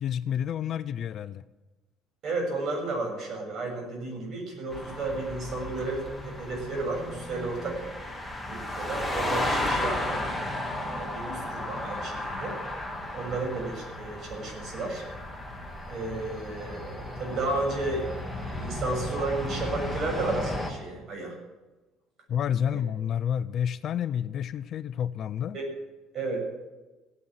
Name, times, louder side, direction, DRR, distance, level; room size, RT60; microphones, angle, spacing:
voice 1, 0.0-1.4 22.3-25.6, left 9 dB, 45° left, 15 dB, 0.5 m, -29 dB
voice 2, 2.2-7.8 8.5-10.3 10.7-12.6 13.1-15.0 15.9-18.0 18.4-21.3 22.7-22.8 25.5-25.7 26.1-26.4, right 2 dB, 45° right, 1 dB, 7.0 m, -33 dB
sound 1, 4.7-20.7, left 1 dB, ahead, 2.3 m, -34 dB
16.5 x 9.8 x 7.9 m, 1.1 s
cardioid pair, 145°, 0 cm